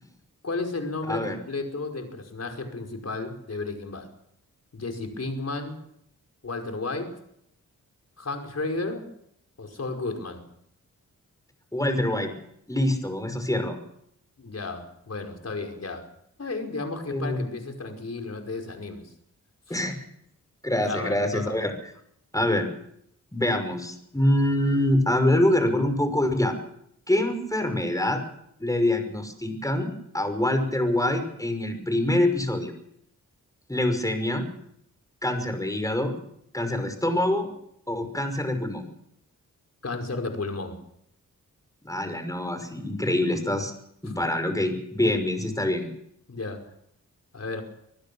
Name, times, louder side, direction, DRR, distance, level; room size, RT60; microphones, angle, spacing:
voice 1, 0.4-4.1 4.7-5.8 6.4-7.1 8.2-9.1 9.6-10.4 14.4-16.1 16.4-19.0 19.7-19.8 20.8-21.6 39.8-40.8 44.1-44.2 46.3-46.7 47.3-47.6, left 3 dB, 50° left, 5 dB, 5.4 m, -33 dB
voice 2, 11.7-12.3 12.7-13.8 17.1-17.4 19.7-20.0 20.6-21.7 22.3-22.7 23.3-26.6 27.1-28.2 28.6-32.7 33.7-34.5 35.2-36.1 36.5-37.5 37.9-38.9 41.8-43.7 44.0-45.9, left 1 dB, 10° left, 8 dB, 5.5 m, -25 dB
25.5 x 15.5 x 7.1 m, 0.74 s
cardioid pair, 60°, 33 cm